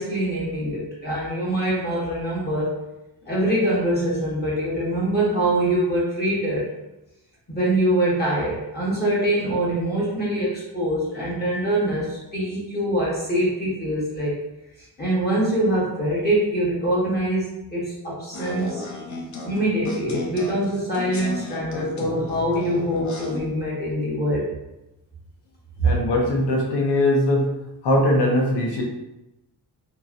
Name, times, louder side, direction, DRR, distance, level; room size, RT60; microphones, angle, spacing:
voice 1, 0.0-2.7 3.3-6.7 7.5-14.4 15.0-18.9 19.4-24.5 25.8-25.9, right 1 dB, 25° left, -7 dB, 1.0 m, -24 dB
sound 1, 18.3-23.4, left 2 dB, 45° left, 0.5 m, -34 dB
voice 2, 25.8-27.4 27.8-28.8, left 1 dB, 80° left, -1 dB, 0.8 m, -20 dB
2.8 x 2.6 x 2.4 m, 0.93 s
wide cardioid pair, 155°, 40 cm